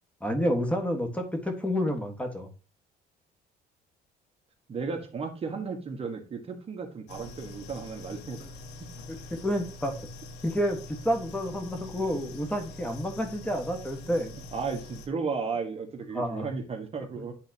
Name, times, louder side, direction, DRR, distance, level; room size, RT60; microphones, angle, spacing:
voice 1, 0.2-2.5 9.3-9.9 10.4-10.8 11.0-14.3 16.1-16.5 17.2-17.3, equal, 5° left, 4 dB, 1.5 m, -29 dB
voice 2, 4.7-8.4 14.5-17.3, right 5 dB, 35° right, 4 dB, 1.5 m, -34 dB
sound 1, 7.1-15.1, left 2 dB, 85° left, 1.1 m, -44 dB
10.5 x 4.0 x 2.9 m, 0.34 s
cardioid pair, 110°, 17 cm